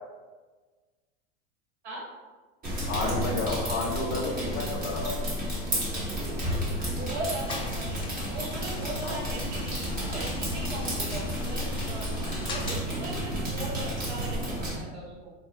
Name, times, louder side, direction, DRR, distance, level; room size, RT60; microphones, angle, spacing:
sound 1, 2.6-14.8, equal, 25° right, 1.2 m, -32 dB
voice 1, 2.9-5.2 9.0-9.2, left 3 dB, 40° left, -3 dB, 1.0 m, -31 dB
voice 2, 6.8-12.1 12.5-15.3, right 2 dB, 75° right, -2 dB, 1.3 m, -38 dB
sound 2, 7.4-12.8, left 2 dB, 15° left, 0.3 m, -39 dB
3.5 x 2.2 x 3.8 m, 1.3 s
hypercardioid pair, 105°, 35 cm